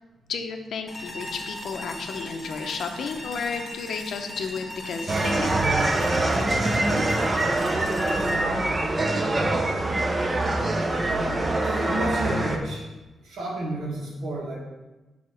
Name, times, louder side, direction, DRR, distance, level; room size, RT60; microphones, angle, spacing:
voice 1, 0.3-5.8, left 5 dB, 65° left, 5 dB, 0.6 m, -32 dB
sound 1, 0.9-9.9, left 1 dB, 20° left, 0.8 m, -39 dB
sound 2, 5.1-12.6, right 2 dB, 20° right, 0.5 m, -24 dB
voice 2, 11.6-12.9 13.2-14.6, right 1 dB, 75° right, -3 dB, 1.6 m, -30 dB
4.8 x 4.2 x 5.7 m, 1.1 s
wide cardioid pair, 150°, 0 cm